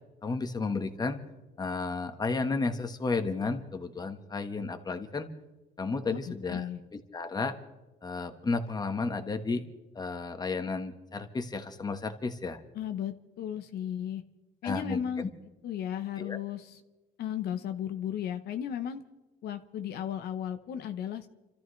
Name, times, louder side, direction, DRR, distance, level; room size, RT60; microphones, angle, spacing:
voice 1, 0.2-1.2 1.6-5.3 5.8-7.6 8.0-9.6 9.9-12.6 14.6-15.3 16.2-16.4, left 3 dB, 25° left, 7 dB, 1.4 m, -33 dB
voice 2, 6.1-6.8 12.7-14.2 14.6-15.3 15.6-16.8 17.2-19.0 19.4-21.3, left 9 dB, 70° left, 8 dB, 0.9 m, -35 dB
29.5 x 13.5 x 3.3 m, 1.1 s
cardioid pair, 110°, 17 cm